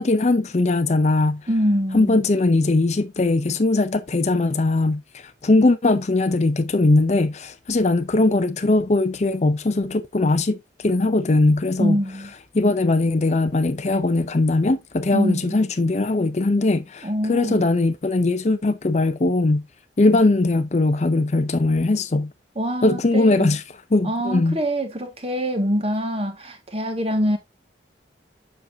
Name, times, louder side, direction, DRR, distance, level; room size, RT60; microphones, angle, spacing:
voice 1, 0.0-1.4 1.9-5.0 5.4-10.6 10.8-12.0 12.5-19.7 20.0-22.3 22.8-23.6 23.9-24.6, left 2 dB, 40° left, 0.5 m, -20 dB
voice 2, 1.5-2.2 11.8-12.3 15.1-15.6 17.0-17.7 22.6-23.6 24.0-27.4, equal, 30° right, 1.7 m, -24 dB
7.4 x 6.4 x 2.7 m
head